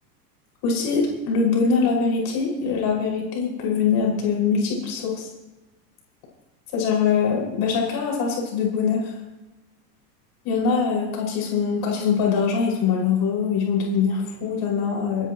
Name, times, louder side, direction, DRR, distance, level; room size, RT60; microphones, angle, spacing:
voice 1, 0.6-5.3 6.7-9.1 10.4-15.3, left 5 dB, 50° left, -2 dB, 6.5 m, -23 dB
28.0 x 10.5 x 3.2 m, 1.1 s
hypercardioid pair, 110°, 48 cm